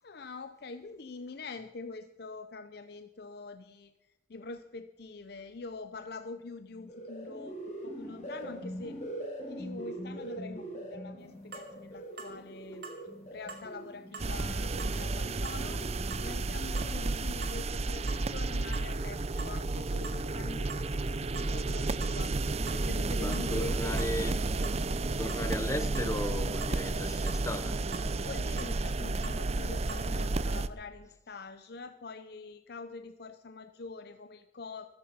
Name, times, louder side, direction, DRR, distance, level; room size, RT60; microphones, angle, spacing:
voice 1, 0.0-3.9 4.3-9.0 9.5-12.9 13.3-15.9 16.2-24.2 25.3-25.5 28.2-34.9, left 3 dB, 60° left, 0.6 m, -45 dB
sound 1, 6.7-17.2, right 1 dB, 40° left, 4.0 m, -43 dB
sound 2, 11.5-11.7 12.2-12.4 12.8-13.0 13.5-13.7 14.1-14.3 14.8-15.0 15.4-15.6 16.1-16.3 16.8-16.9 17.4-17.6 18.0-18.4 18.7-18.9 19.4-19.6 20.0-20.2 20.7-20.9 21.3-21.5 22.0-22.2 22.7-22.8 23.3-23.5 24.0-24.1 24.6-24.8 25.3-25.5 25.9-26.1 26.6-26.8 27.3-27.4 27.9-28.1 28.6-28.8 29.2-29.4 29.9-30.1, right 4 dB, 60° right, 2.8 m, -45 dB
sound 3, 14.2-30.7, right 2 dB, 35° right, 0.6 m, -32 dB
voice 2, 23.2-24.5 25.2-27.8, left 1 dB, 15° left, 0.6 m, -36 dB
14.5 x 14.0 x 5.5 m
head